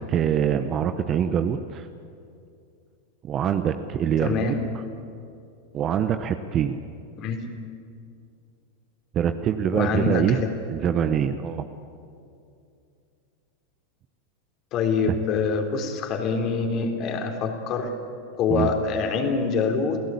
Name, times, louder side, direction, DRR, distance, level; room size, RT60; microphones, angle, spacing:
voice 1, 0.1-1.9 3.2-4.6 5.7-6.8 9.1-10.4 10.7-11.6 15.1-15.2 18.5-18.7, right 9 dB, 35° right, 9 dB, 1.1 m, -24 dB
voice 2, 4.2-4.6 7.2-7.4 9.7-10.5 14.7-17.9 18.4-20.0, left 5 dB, 45° left, 4 dB, 3.7 m, -25 dB
29.0 x 17.0 x 8.7 m, 2.5 s
hypercardioid pair, 95°, 0 cm